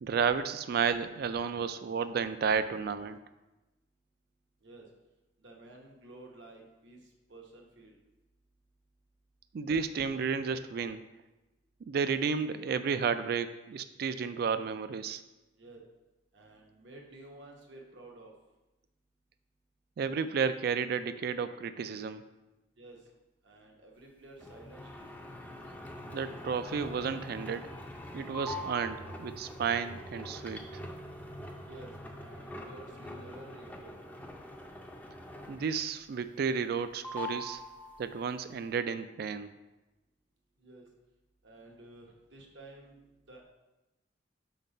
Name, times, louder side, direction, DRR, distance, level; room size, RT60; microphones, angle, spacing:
voice 1, 0.0-3.2 9.5-11.0 11.8-15.2 20.0-22.2 26.1-27.7 28.1-30.6 35.5-37.6 38.0-39.5, right 6 dB, 55° right, 12 dB, 0.3 m, -32 dB
voice 2, 5.4-8.0 15.6-15.8 16.3-18.3 22.8-23.1 23.4-25.1 31.7-33.9 40.6-40.9 41.4-43.4, right 2 dB, 70° right, 0 dB, 1.0 m, -52 dB
sound 1, 24.4-35.9 36.2-36.8 37.0-38.3, left 1 dB, 10° left, 0.4 m, -43 dB
4.5 x 3.9 x 5.3 m, 1.0 s
head